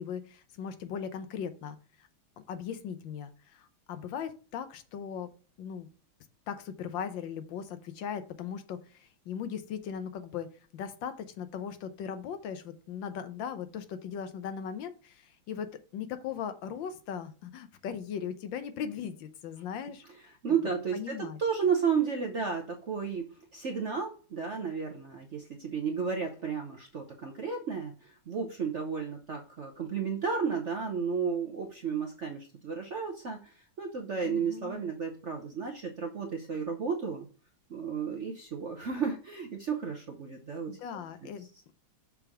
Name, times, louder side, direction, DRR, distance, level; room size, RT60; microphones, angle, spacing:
voice 1, 0.0-2.1 2.5-5.3 5.6-5.9 6.5-20.1 20.9-21.4 34.2-34.8 40.7-41.7, left 8 dB, 75° left, 10 dB, 1.4 m, -38 dB
voice 2, 20.4-37.3 37.7-41.3, right 6 dB, 55° right, 3 dB, 0.8 m, -33 dB
6.8 x 3.5 x 6.0 m, 0.38 s
omnidirectional pair, 2.2 m